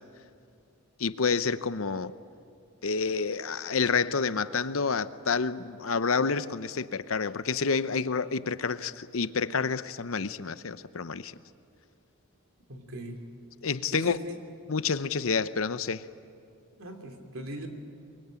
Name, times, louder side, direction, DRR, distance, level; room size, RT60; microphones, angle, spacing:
voice 1, 1.0-2.1 2.8-11.3 13.6-14.2 14.7-16.0, left 5 dB, 75° left, 14 dB, 0.8 m, -29 dB
voice 2, 12.7-13.3 13.9-14.4 16.8-17.7, right 1 dB, 75° right, 5 dB, 3.0 m, -39 dB
24.0 x 23.5 x 9.0 m, 2.5 s
head